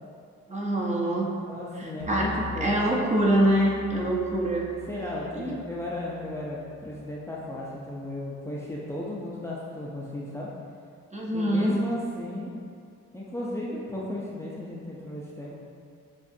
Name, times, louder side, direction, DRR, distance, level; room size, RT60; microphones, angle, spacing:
voice 1, 0.5-1.3 1.8-2.3 2.6-4.7 5.3-5.6 11.1-11.8, right 1 dB, 25° right, -3 dB, 0.8 m, -25 dB
voice 2, 1.5-2.7 4.9-10.5 11.3-12.5 13.1-15.5, left 1 dB, 10° left, -6 dB, 0.6 m, -35 dB
sound 1, 2.0-7.3, left 4 dB, 85° left, 0.6 m, -44 dB
7.2 x 2.4 x 2.7 m, 2.3 s
cardioid pair, 90°, 30 cm